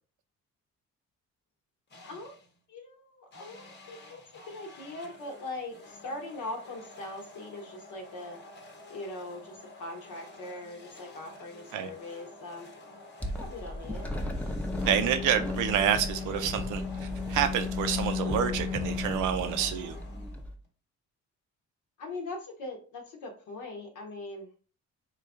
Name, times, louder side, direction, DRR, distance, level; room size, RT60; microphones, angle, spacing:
sound 1, 1.9-2.6 3.3-20.7, left 2 dB, 35° left, 0.8 m, -51 dB
voice 1, 2.0-2.4 2.7-8.4 8.9-12.7 13.4-14.1 22.0-24.5, left 2 dB, 80° left, 1 dB, 0.9 m, -41 dB
sound 2, 13.2-20.5, left 3 dB, 5° left, 0.5 m, -34 dB
voice 2, 14.9-20.0, right 9 dB, 85° right, 9 dB, 0.6 m, -28 dB
3.1 x 2.4 x 3.5 m, 0.40 s
cardioid pair, 90°, 30 cm